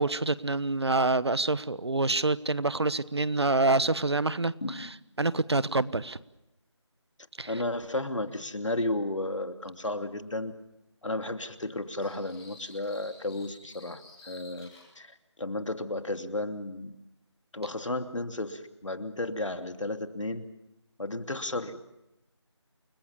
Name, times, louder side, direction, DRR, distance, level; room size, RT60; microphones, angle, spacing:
voice 1, 0.0-4.9 5.2-6.2 7.4-7.5, right 2 dB, 60° right, 17 dB, 1.2 m, -26 dB
voice 2, 7.5-10.5 11.0-14.7 15.0-16.9 17.5-20.5 21.0-21.8, left 2 dB, 85° left, 7 dB, 2.8 m, -33 dB
sound 1, 12.0-14.9, left 2 dB, 5° left, 2.6 m, -52 dB
29.5 x 20.5 x 7.2 m, 0.90 s
figure-of-eight pair, 180°, 15 cm